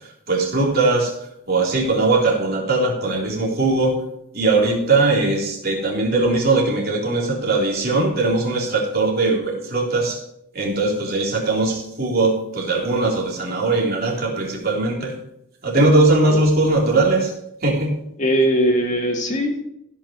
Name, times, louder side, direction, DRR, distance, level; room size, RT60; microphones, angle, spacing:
voice 1, 0.3-1.1 1.5-4.0 4.3-10.2 10.5-15.1 15.6-17.3 17.6-18.0, right 2 dB, 45° right, -2 dB, 3.6 m, -20 dB
voice 2, 18.2-19.6, equal, 35° left, 2 dB, 2.1 m, -20 dB
15.5 x 6.0 x 7.0 m, 0.79 s
head